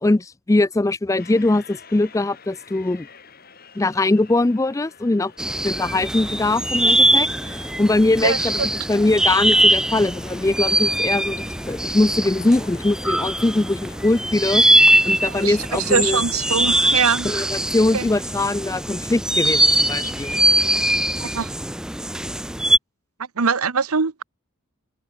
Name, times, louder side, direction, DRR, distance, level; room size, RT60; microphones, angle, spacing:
voice 1, 0.0-3.1 3.8-8.6 8.9-14.6 15.0-16.2 17.2-20.4, left 2 dB, 15° left, 0.3 m, -21 dB
sound 1, 1.2-17.4, left 5 dB, 45° left, 5.3 m, -47 dB
sound 2, 5.4-22.8, right 1 dB, 5° right, 1.0 m, -21 dB
voice 2, 8.2-8.7 15.3-17.5 17.9-18.1 21.2-21.5 23.4-24.2, right 5 dB, 90° right, 1.0 m, -23 dB
open air
head